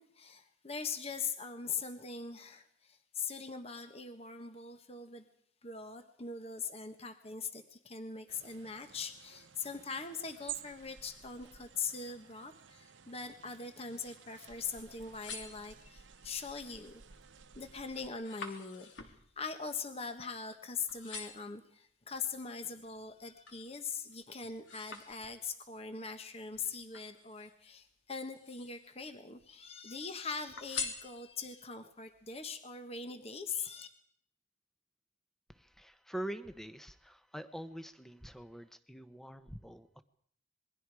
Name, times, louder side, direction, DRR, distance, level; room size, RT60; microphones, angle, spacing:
voice 1, 0.0-5.2 5.6-17.2 17.5-33.9, left 5 dB, 35° left, 7 dB, 1.4 m, -42 dB
sound 1, 8.3-18.1, right 10 dB, 85° right, 0.9 m, -52 dB
sound 2, 15.0-16.2 16.7-17.1 17.5-20.6 20.9-21.6 22.2-23.7 24.1-25.7 26.5-27.7 28.2-29.0 29.4-30.1 30.6-31.6 32.1-32.2, left 5 dB, 80° left, 3.1 m, -46 dB
voice 2, 35.5-40.0, right 1 dB, ahead, 11 dB, 1.1 m, -45 dB
27.5 x 22.0 x 4.9 m, 0.64 s
head